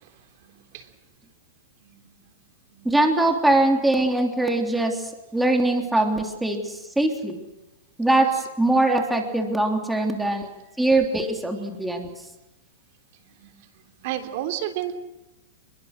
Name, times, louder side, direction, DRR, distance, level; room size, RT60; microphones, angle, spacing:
voice 1, 0.4-0.9 1.8-2.1 2.7-2.9 5.7-5.8 13.4-13.5 14.0-15.0, right 12 dB, 50° right, 7 dB, 3.4 m, -32 dB
voice 2, 2.8-5.0 5.3-7.4 8.0-8.3 8.6-10.5 10.8-12.1, right 2 dB, 5° right, 3 dB, 3.3 m, -22 dB
29.5 x 22.0 x 6.7 m, 0.97 s
hypercardioid pair, 145°, 0 cm